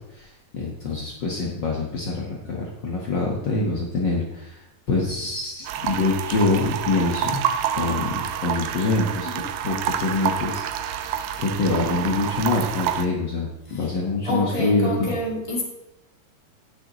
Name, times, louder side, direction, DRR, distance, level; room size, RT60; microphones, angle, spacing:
voice 1, 0.5-4.6 4.9-7.4 7.8-9.3 9.6-11.1 11.4-15.1, left 3 dB, 75° left, -3 dB, 1.0 m, -25 dB
sound 1, 5.6-13.1, right 9 dB, 80° right, 2.2 m, -28 dB
voice 2, 14.2-15.6, equal, 10° left, -2 dB, 1.6 m, -29 dB
17.5 x 6.5 x 3.1 m, 0.93 s
omnidirectional pair, 4.2 m